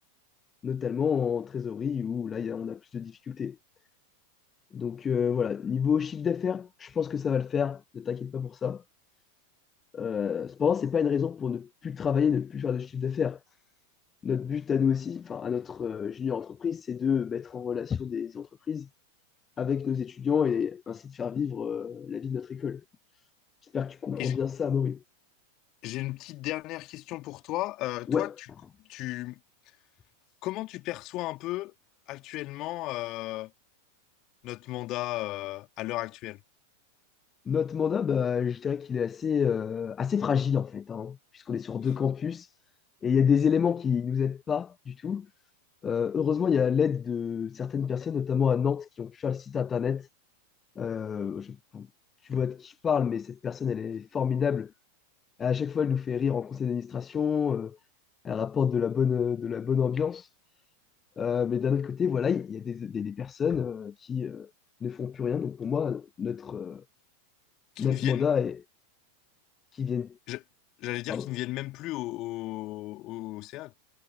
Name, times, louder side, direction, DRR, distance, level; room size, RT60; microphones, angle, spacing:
voice 1, 0.6-3.6 4.7-8.8 9.9-13.4 14.2-18.9 19.6-22.8 23.7-25.0 28.1-28.3 37.5-42.5 43.0-45.3 45.8-50.1 50.8-51.9 52.2-54.7 55.4-57.8 58.2-60.3 61.2-64.5 64.8-66.8 67.8-68.6 69.7-70.2 71.1-71.3, left 7 dB, 20° left, 1.0 m, -28 dB
voice 2, 25.8-28.5 28.9-29.4 30.4-31.7 32.1-33.5 34.4-36.4 67.8-68.3 70.3-70.4 70.8-73.7, left 18 dB, 40° left, 3.7 m, -35 dB
figure-of-eight pair, 90°, 0 cm